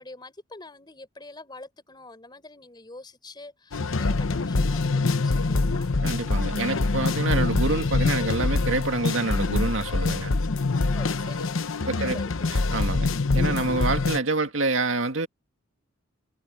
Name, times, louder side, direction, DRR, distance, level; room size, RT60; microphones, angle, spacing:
voice 1, 0.0-5.9 10.8-11.7 11.9-12.6 12.9-13.1, left 2 dB, 20° left, 4.1 m, -45 dB
sound 1, 3.7-14.2, left 3 dB, 85° left, 0.9 m, -25 dB
voice 2, 6.0-10.3 11.9-12.2 12.5-15.3, right 3 dB, 75° right, 2.0 m, -27 dB
head